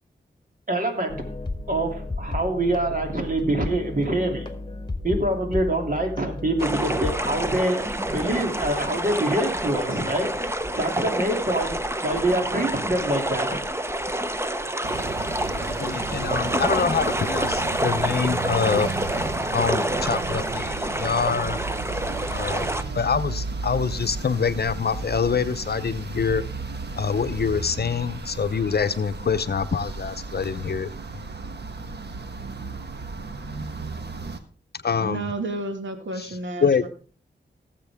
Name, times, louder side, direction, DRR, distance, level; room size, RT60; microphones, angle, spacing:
voice 1, 0.7-1.2 1.7-4.5 5.0-10.3 10.8-13.6, right 1 dB, 45° right, 3 dB, 3.0 m, -25 dB
sound 1, 1.1-7.6, left 2 dB, 25° left, 1.8 m, -33 dB
sound 2, 6.6-22.8, right 1 dB, 15° right, 1.0 m, -28 dB
sound 3, 14.8-34.4, right 3 dB, 60° right, 1.4 m, -34 dB
voice 2, 15.5-18.9 19.5-21.6 22.3-26.4 27.0-30.9 34.8-35.3 36.2-36.3 36.6-36.9, left 6 dB, 55° left, 11 dB, 0.7 m, -25 dB
voice 3, 35.0-36.9, right 2 dB, 80° right, 5 dB, 2.2 m, -31 dB
18.0 x 7.6 x 3.6 m, 0.39 s
cardioid pair, 65°, 19 cm